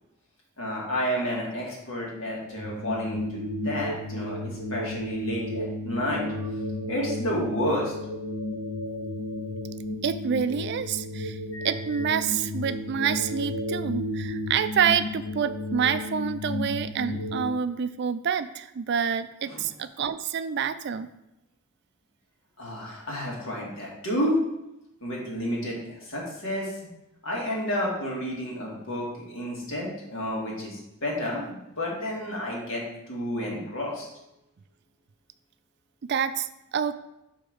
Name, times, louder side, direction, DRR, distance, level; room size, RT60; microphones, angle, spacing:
voice 1, 0.6-6.2 6.9-7.9 19.5-19.6 22.6-24.4 25.0-26.8 27.2-34.1, equal, 65° left, -3 dB, 2.1 m, -30 dB
sound 1, 2.6-17.4, left 1 dB, 85° left, 1.7 m, -33 dB
voice 2, 10.0-11.4 11.6-21.1 36.0-36.9, right 7 dB, 50° right, 11 dB, 0.3 m, -27 dB
5.1 x 4.6 x 6.2 m, 0.88 s
head